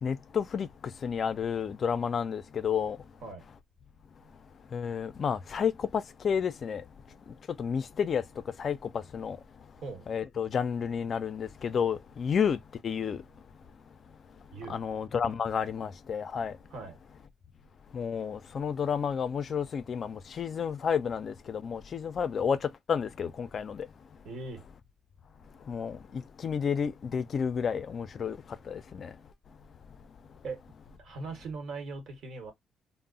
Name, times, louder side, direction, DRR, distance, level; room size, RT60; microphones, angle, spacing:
voice 1, 0.0-3.1 4.7-6.9 7.3-9.4 10.1-13.3 14.7-16.6 17.9-23.9 25.6-29.2, left 7 dB, 55° left, 0.3 m, -31 dB
voice 2, 24.2-24.6 30.4-30.6 31.0-32.5, right 3 dB, 75° right, 1.0 m, -40 dB
2.2 x 2.0 x 3.7 m
cardioid pair, 90°, 0 cm